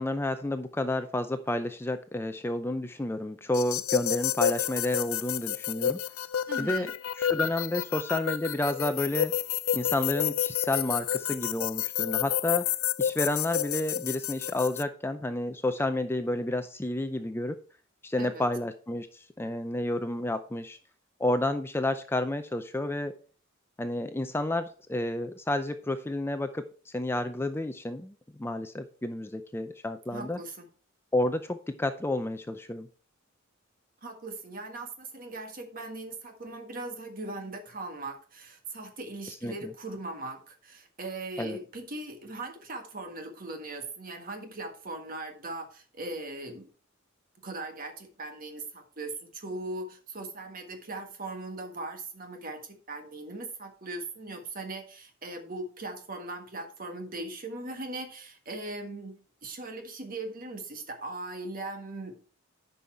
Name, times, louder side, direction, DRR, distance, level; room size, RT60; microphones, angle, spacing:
voice 1, 0.0-6.0 6.6-6.9 7.2-9.3 9.7-12.7 13.0-17.6 18.0-20.8 21.2-23.1 23.8-30.4 31.1-32.9 39.4-39.7 41.4-41.6, left 1 dB, 10° left, 9 dB, 0.4 m, -30 dB
sound 1, 3.5-14.8, left 10 dB, 80° left, 0.5 m, -30 dB
voice 2, 6.5-6.9 18.2-18.4 30.1-30.6 34.0-46.7 47.4-62.2, right 2 dB, 45° right, 5 dB, 1.6 m, -39 dB
10.0 x 5.5 x 4.4 m, 0.40 s
head